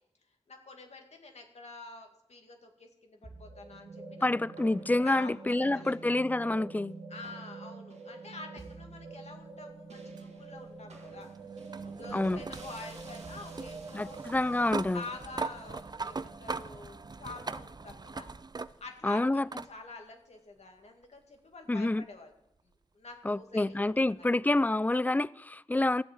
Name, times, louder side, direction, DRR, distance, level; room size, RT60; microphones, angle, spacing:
voice 1, 0.5-4.3 5.0-6.0 7.1-11.3 11.8-14.2 14.9-18.3 18.8-22.3 22.6-24.3, left 3 dB, 75° left, 2.2 m, -47 dB
sound 1, 3.2-17.7, right 4 dB, 85° right, 2.0 m, -47 dB
voice 2, 4.2-7.0 12.1-12.4 13.9-15.0 19.0-19.5 21.7-22.0 23.2-26.0, left 2 dB, 15° left, 0.4 m, -28 dB
sound 2, 10.2-19.0 19.5-19.7 21.0-21.1 24.0-24.1, right 4 dB, 40° right, 0.5 m, -41 dB
14.5 x 7.9 x 7.3 m
cardioid pair, 45°, 11 cm